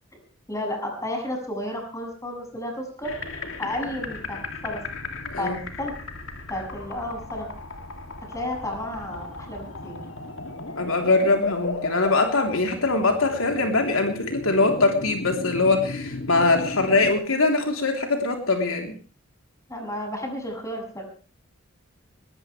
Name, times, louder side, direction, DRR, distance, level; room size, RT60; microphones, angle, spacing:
voice 1, 0.5-3.1 3.6-4.4 4.6-4.8 5.4-5.5 5.8-5.9 6.5-7.5 8.3-10.0 19.7-21.0, left 1 dB, 15° left, 2 dB, 7.5 m, -32 dB
sound 1, 3.0-17.1, left 3 dB, 70° left, 2.8 m, -35 dB
voice 2, 5.2-5.6 10.8-19.0, left 3 dB, 85° left, 3 dB, 3.6 m, -22 dB
20.5 x 19.0 x 3.4 m, 0.40 s
head